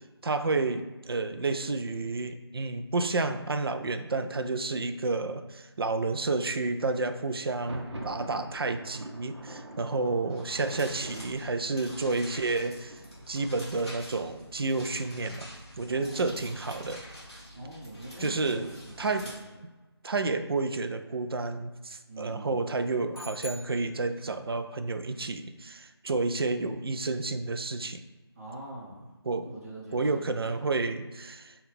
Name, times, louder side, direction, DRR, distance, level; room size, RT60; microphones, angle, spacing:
voice 1, 0.2-13.0 13.3-17.0 18.2-18.7 19.0-19.3 20.0-28.0 29.2-29.5 29.9-31.6, right 3 dB, 60° right, 8 dB, 0.4 m, -30 dB
Thunder, 7.4-15.2, right 1 dB, 85° right, 0.8 m, -46 dB
voice 2, 10.0-10.3 15.9-16.4 17.5-19.4 22.1-22.8 28.4-29.1 29.4-30.7, right 1 dB, 35° right, -4 dB, 0.9 m, -44 dB
sound 1, 10.3-19.3, equal, 15° left, 0.9 m, -47 dB
sound 2, 23.1-24.6, left 2 dB, 55° left, 0.5 m, -45 dB
5.2 x 2.3 x 3.4 m, 1.2 s
figure-of-eight pair, 170°, 14 cm